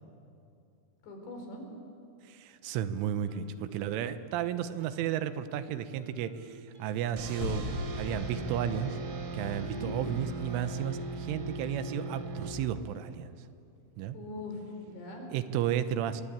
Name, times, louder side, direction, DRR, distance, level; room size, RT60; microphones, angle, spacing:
voice 1, 1.0-1.7 9.6-9.9 14.1-15.3, left 2 dB, 60° left, 2 dB, 6.4 m, -42 dB
voice 2, 2.3-7.6 8.0-9.0 9.3-13.3 14.0-14.2 15.3-16.2, right 10 dB, 80° right, 11 dB, 3.4 m, -33 dB
Guitar, 3.3-11.0, right 4 dB, 20° right, 3.2 m, -54 dB
sound 1, 7.2-13.0, right 2 dB, 60° right, 5.0 m, -39 dB
sound 2, 7.3-10.2 10.6-10.7, left 2 dB, 45° left, 3.1 m, -40 dB
29.0 x 22.0 x 8.8 m, 2.5 s
omnidirectional pair, 5.6 m